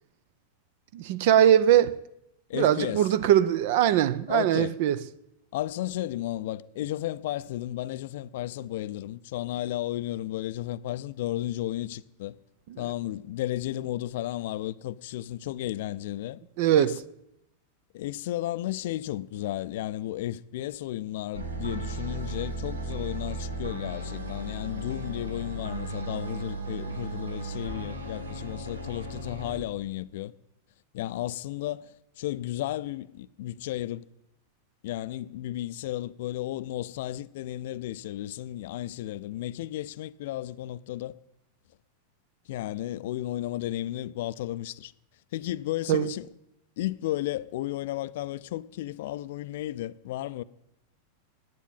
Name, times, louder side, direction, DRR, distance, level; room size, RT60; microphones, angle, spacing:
voice 1, 0.9-2.0 2.5-5.0 16.6-17.0 45.9-46.1, right 11 dB, 50° right, 0.6 m, -21 dB
voice 2, 2.5-3.1 4.3-4.8 5.5-12.4 12.8-16.4 16.7-17.0 17.9-30.3 30.9-34.0 34.8-41.2 42.5-44.9 45.3-46.3 46.8-50.4, left 14 dB, 55° left, 0.5 m, -33 dB
sound 1, 21.3-29.6, right 2 dB, 75° right, 1.6 m, -35 dB
10.5 x 9.3 x 9.2 m
figure-of-eight pair, 90°, 0 cm